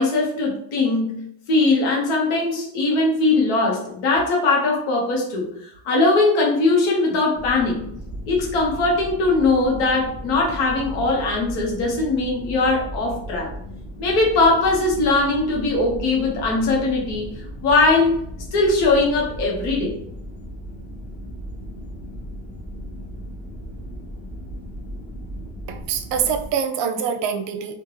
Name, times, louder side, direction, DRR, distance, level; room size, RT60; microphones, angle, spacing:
voice 1, 0.0-7.8 8.3-13.5 14.0-17.3 17.6-18.2 18.5-19.9, left 3 dB, 85° left, -2 dB, 1.1 m, -20 dB
sound 1, 7.4-26.5, equal, 15° left, 0.7 m, -36 dB
voice 2, 25.7-27.7, right 7 dB, 60° right, 6 dB, 0.6 m, -25 dB
2.5 x 2.4 x 3.0 m, 0.71 s
supercardioid pair, 70°, 49 cm